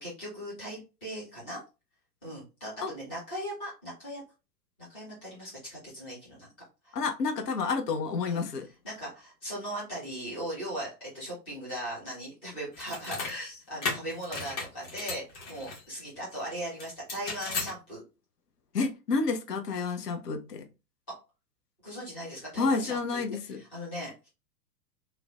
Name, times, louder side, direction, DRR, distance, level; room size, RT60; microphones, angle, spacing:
voice 1, 0.0-1.6 2.2-4.2 4.9-6.5 6.8-7.0 8.2-8.4 8.8-18.0 21.8-23.2 23.5-24.3, equal, 10° left, 0.3 m, -39 dB
voice 2, 6.9-8.7 18.7-20.6 22.6-23.6, left 4 dB, 75° left, 0.6 m, -29 dB
sound 1, 12.7-13.3 13.8-15.8 16.8-17.7, left 4 dB, 45° left, 1.2 m, -35 dB
3.1 x 2.0 x 2.4 m
figure-of-eight pair, 105°, 48 cm